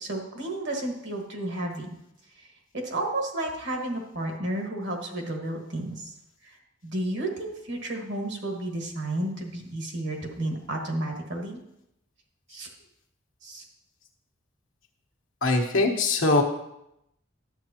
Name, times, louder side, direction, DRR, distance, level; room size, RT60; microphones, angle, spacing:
voice 1, 0.0-1.9 2.4-2.5 2.7-6.1 6.4-6.5 6.8-11.6 12.5-12.7 13.4-13.6, right 1 dB, 60° right, 2 dB, 1.6 m, -32 dB
voice 2, 15.4-16.4, left 3 dB, 75° left, 1 dB, 1.2 m, -22 dB
11.5 x 7.8 x 2.9 m, 0.82 s
head